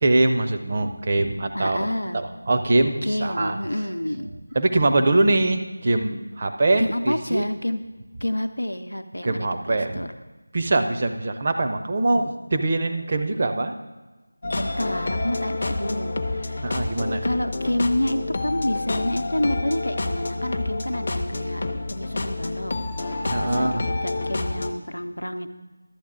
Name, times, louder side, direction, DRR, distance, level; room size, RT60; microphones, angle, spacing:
voice 1, 0.0-1.9 2.1-3.6 4.5-7.5 9.2-10.0 10.5-13.7 16.6-17.3 23.2-23.8, right 2 dB, 35° right, 6 dB, 0.6 m, -23 dB
voice 2, 1.5-2.2 3.0-4.3 6.8-7.8 8.2-10.1 14.5-16.7 17.2-21.6 21.9-22.7 23.3-25.5, left 1 dB, 80° left, 8 dB, 0.7 m, -28 dB
sound 1, 14.4-24.7, left 2 dB, 35° left, 0.6 m, -28 dB
11.5 x 8.5 x 3.8 m, 1.2 s
figure-of-eight pair, 165°, 0 cm